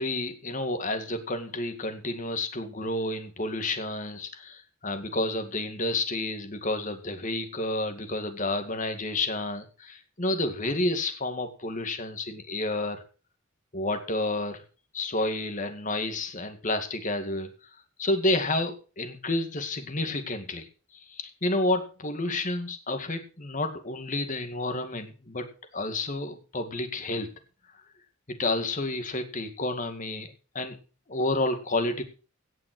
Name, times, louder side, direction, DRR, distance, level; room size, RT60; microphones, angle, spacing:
voice 1, 0.0-13.0 13.7-14.6 14.9-17.5 18.0-20.7 21.1-25.5 25.7-27.3 28.4-30.8 31.1-32.0, left 2 dB, 40° left, 7 dB, 2.1 m, -30 dB
17.5 x 6.0 x 6.1 m, 0.36 s
head